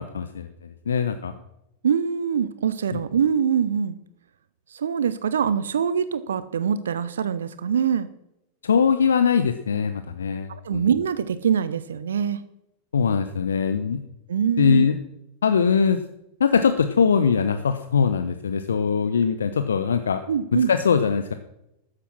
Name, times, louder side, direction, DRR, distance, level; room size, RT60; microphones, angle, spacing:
voice 1, 0.0-1.3 2.9-3.0 8.6-10.9 12.9-14.0 14.6-15.0 15.4-16.0 16.4-20.2 20.5-21.3, left 6 dB, 70° left, 9 dB, 0.8 m, -22 dB
voice 2, 1.8-4.0 4.7-8.1 10.5-12.4 14.3-14.8 20.3-20.7, right 7 dB, 65° right, 15 dB, 0.6 m, -24 dB
13.0 x 9.9 x 6.1 m, 0.84 s
figure-of-eight pair, 90°, 0 cm